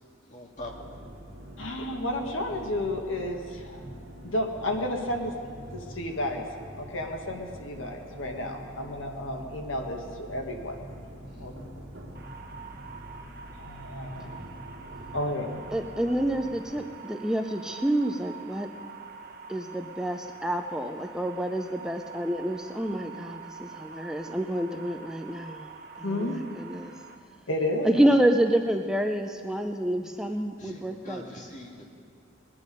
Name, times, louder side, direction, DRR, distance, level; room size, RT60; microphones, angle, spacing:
voice 1, 0.3-1.0 11.3-11.5 30.6-32.0, left 1 dB, 40° left, -1 dB, 2.0 m, -43 dB
sound 1, 0.6-16.9, equal, 75° right, 1.7 m, -45 dB
voice 2, 1.6-3.8 4.2-5.3 5.7-6.4 6.8-10.8 11.4-11.5 13.6-14.4 15.1-15.6 26.0-26.4 27.5-27.9, left 1 dB, 75° left, 2 dB, 1.6 m, -32 dB
sound 2, 12.1-27.1, right 6 dB, 50° right, 1.1 m, -45 dB
voice 3, 15.7-18.7 19.5-25.7 26.0-26.9 27.8-31.3, right 1 dB, 5° right, 4 dB, 0.5 m, -28 dB
20.5 x 10.5 x 5.3 m, 2.2 s
head